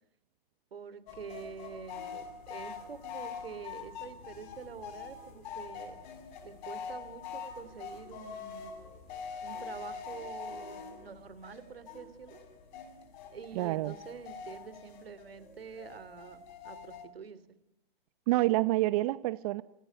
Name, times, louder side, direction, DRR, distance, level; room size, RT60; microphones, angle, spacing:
voice 1, 0.7-6.0 6.4-8.7 9.4-12.4 13.3-17.4, right 6 dB, 80° right, 14 dB, 3.8 m, -46 dB
sound 1, 1.1-17.1, left 6 dB, 45° left, 6.4 m, -44 dB
voice 2, 13.5-13.9 18.3-19.6, right 18 dB, 40° right, 15 dB, 0.9 m, -28 dB
28.0 x 19.0 x 9.7 m, 0.81 s
hypercardioid pair, 125°, 30 cm